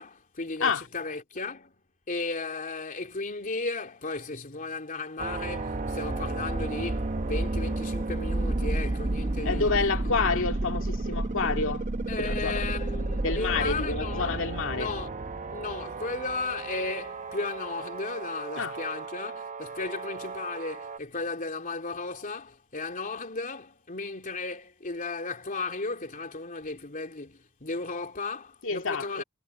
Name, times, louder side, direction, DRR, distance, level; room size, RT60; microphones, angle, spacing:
voice 1, 0.0-1.8 2.1-9.8 10.0-10.4 12.1-14.4 14.7-15.3 15.5-29.2, left 3 dB, 40° left, 3.0 m, -35 dB
sound 1, 5.2-21.0, right 2 dB, 35° right, 0.8 m, -32 dB
voice 2, 9.5-11.9 12.2-12.6 13.2-14.9 18.6-18.8 28.6-29.2, left 4 dB, 65° left, 2.1 m, -28 dB
head